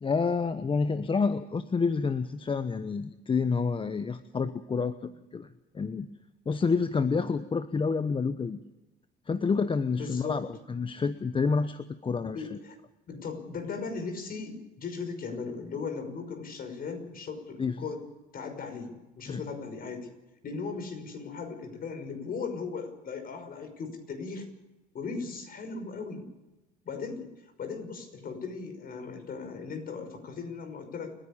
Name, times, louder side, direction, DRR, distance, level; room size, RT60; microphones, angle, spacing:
voice 1, 0.0-5.5 5.7-6.1 6.5-8.6 9.3-12.4 17.6-17.8 19.3-19.4, left 5 dB, 25° left, 12 dB, 1.0 m, -28 dB
voice 2, 9.9-10.4 12.2-12.8 13.1-18.0 18.3-20.1 20.4-24.5 24.9-26.3 26.9-27.3 27.6-31.1, left 4 dB, 45° left, 6 dB, 5.7 m, -37 dB
29.5 x 10.5 x 8.6 m, 1.0 s
supercardioid pair, 90°, 20 cm